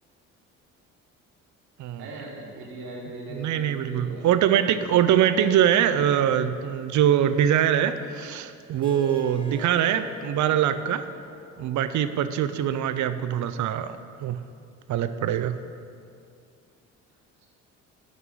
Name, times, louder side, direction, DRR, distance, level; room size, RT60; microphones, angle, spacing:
voice 1, 1.9-4.3 17.4-17.5, right 2 dB, 70° right, -3 dB, 1.8 m, -39 dB
voice 2, 3.3-11.0 11.6-14.4 14.9-15.6, right 10 dB, 50° right, 11 dB, 0.5 m, -23 dB
Harp, 8.8-13.9, left 3 dB, 15° left, 1.0 m, -44 dB
6.1 x 5.4 x 6.3 m, 2.3 s
hypercardioid pair, 55°, 38 cm